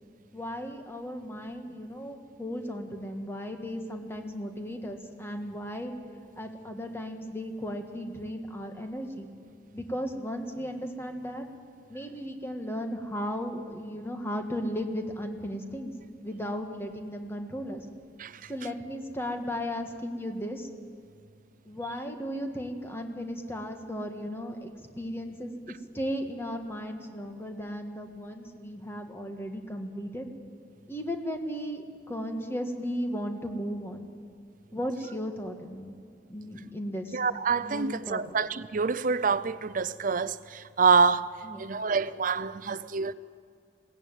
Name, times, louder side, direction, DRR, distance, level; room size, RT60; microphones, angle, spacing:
voice 1, 0.3-5.9 6.4-9.3 9.7-11.4 11.9-15.9 16.2-17.8 18.5-20.7 21.6-30.3 30.9-34.1 34.7-35.9 36.3-37.2 37.6-38.4 41.4-41.6, equal, 15° left, 1.7 m, -35 dB
voice 2, 37.1-43.1, right 5 dB, 50° right, 0.6 m, -26 dB
21.0 x 17.0 x 9.2 m
head